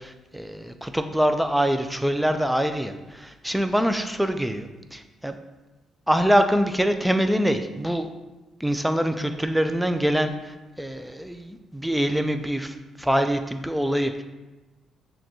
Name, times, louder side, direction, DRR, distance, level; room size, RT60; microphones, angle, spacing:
voice 1, 0.0-5.4 6.1-8.1 8.6-14.2, equal, 5° right, 8 dB, 0.3 m, -24 dB
6.3 x 2.2 x 3.0 m, 1.1 s
cardioid pair, 90°, 0 cm